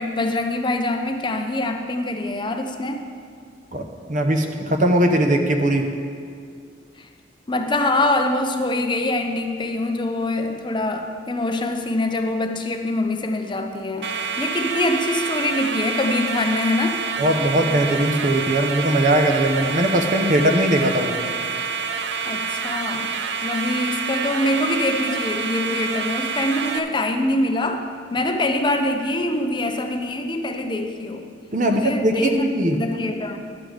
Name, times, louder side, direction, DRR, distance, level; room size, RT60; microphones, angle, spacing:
voice 1, 0.0-3.0 7.0-7.1 7.5-14.1 14.4-17.0 22.3-31.3 31.6-33.4, left 2 dB, 25° left, 5 dB, 0.6 m, -24 dB
voice 2, 3.7-5.9 17.2-21.2 31.5-32.8, right 1 dB, 45° right, 4 dB, 0.9 m, -20 dB
sound 1, 14.0-26.8, right 5 dB, 70° right, 0.6 m, -27 dB
11.0 x 8.1 x 5.0 m, 2.2 s
head